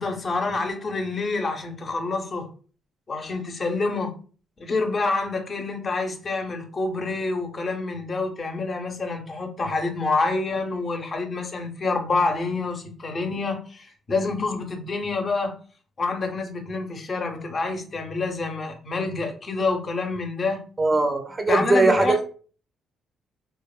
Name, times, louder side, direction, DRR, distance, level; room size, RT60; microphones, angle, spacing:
voice 1, 0.0-2.5 3.1-4.1 4.6-15.5 16.0-20.6 21.5-22.2, left 3 dB, 40° left, 0.5 m, -27 dB
voice 2, 20.8-22.2, right 3 dB, 25° right, 0.4 m, -20 dB
2.7 x 2.1 x 2.2 m
cardioid pair, 90°, 0 cm